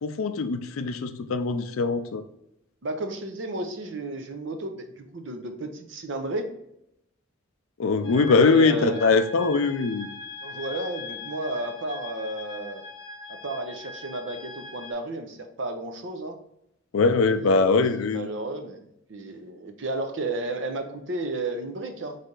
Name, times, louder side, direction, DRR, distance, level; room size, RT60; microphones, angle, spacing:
voice 1, 0.0-2.2 7.8-10.1 16.9-18.3, left 4 dB, 85° left, 10 dB, 0.4 m, -22 dB
voice 2, 2.8-6.5 8.3-9.0 10.4-12.8 13.3-16.4 17.3-18.8 19.1-22.2, right 2 dB, 60° right, 6 dB, 0.6 m, -33 dB
sound 1, 8.0-14.9, left 3 dB, 25° left, 0.6 m, -41 dB
4.0 x 3.3 x 3.7 m, 0.80 s
head